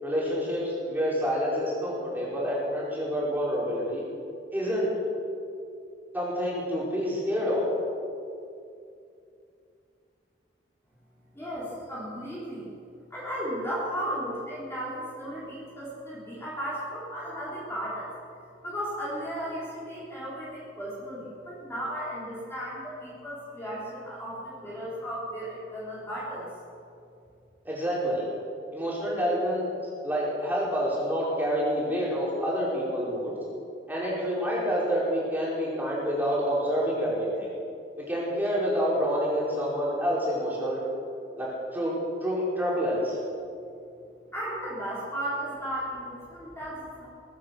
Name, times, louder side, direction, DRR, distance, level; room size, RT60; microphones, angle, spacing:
voice 1, 0.0-4.0 4.5-4.9 6.1-7.7 27.6-28.3 28.7-29.7 30.0-33.3 33.9-37.5 38.0-40.8 41.4-41.9 42.2-43.2, equal, 10° right, -6 dB, 4.9 m, -28 dB
voice 2, 11.3-12.7 13.1-18.1 18.6-26.5 44.3-47.1, equal, 15° left, -8 dB, 3.9 m, -35 dB
22.0 x 9.9 x 6.5 m, 2.5 s
head